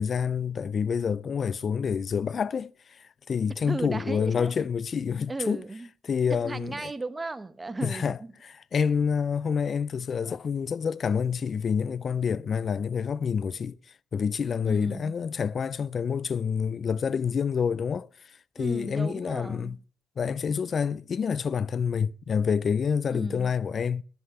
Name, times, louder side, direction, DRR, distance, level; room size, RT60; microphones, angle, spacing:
voice 1, 0.0-2.7 3.3-5.6 6.1-6.7 7.8-13.8 14.1-18.1 18.6-19.8 20.2-24.0, left 6 dB, 45° left, 0.4 m, -27 dB
voice 2, 3.7-4.5 5.3-5.9 6.3-8.3 14.7-15.1 18.6-19.8 23.1-23.5, right 2 dB, 20° right, 0.9 m, -35 dB
10.5 x 7.9 x 5.5 m
cardioid pair, 90°, 0 cm